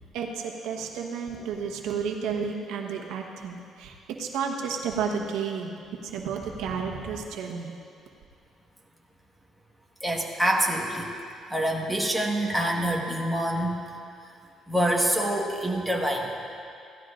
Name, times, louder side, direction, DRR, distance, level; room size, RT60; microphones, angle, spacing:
voice 1, 0.1-7.7, right 6 dB, 90° right, 2 dB, 1.1 m, -32 dB
voice 2, 10.0-11.1 11.5-13.8 14.7-16.3, right 1 dB, ahead, -2 dB, 1.5 m, -26 dB
16.5 x 12.5 x 2.5 m, 2.5 s
cardioid pair, 110°, 0 cm